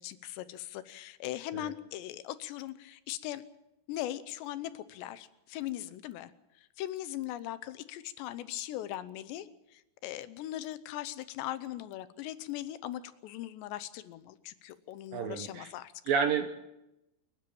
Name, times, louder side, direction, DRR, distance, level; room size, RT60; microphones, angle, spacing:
voice 1, 0.0-3.4 3.9-6.3 6.6-15.9, left 13 dB, 80° left, 14 dB, 3.1 m, -40 dB
voice 2, 15.1-15.7 16.1-16.6, right 6 dB, 65° right, 7 dB, 2.4 m, -30 dB
29.0 x 10.5 x 8.8 m, 0.89 s
omnidirectional pair, 5.0 m